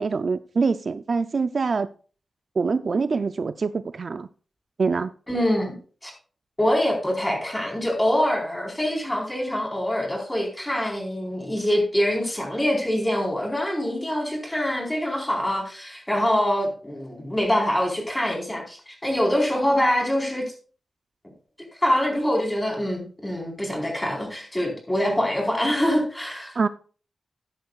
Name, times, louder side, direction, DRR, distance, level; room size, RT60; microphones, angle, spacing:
voice 1, 0.0-1.9 2.6-4.3 4.8-5.1 26.6-26.7, right 4 dB, 55° right, 0.4 m, -24 dB
voice 2, 5.3-5.8 6.0-6.1 6.6-20.5 21.8-26.6, left 1 dB, 15° left, 4.2 m, -24 dB
14.0 x 10.0 x 2.4 m
wide cardioid pair, 105°, 0 cm